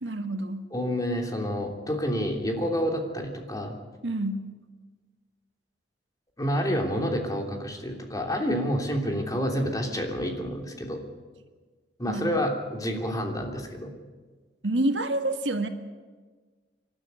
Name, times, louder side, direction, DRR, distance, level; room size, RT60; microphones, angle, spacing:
voice 1, 0.0-0.7 4.0-4.5 12.1-12.4 14.6-15.7, right 1 dB, 85° right, 6 dB, 1.7 m, -28 dB
voice 2, 0.7-3.7 6.4-11.0 12.0-13.9, equal, 20° left, 2 dB, 3.1 m, -28 dB
26.5 x 12.5 x 9.5 m, 1.4 s
head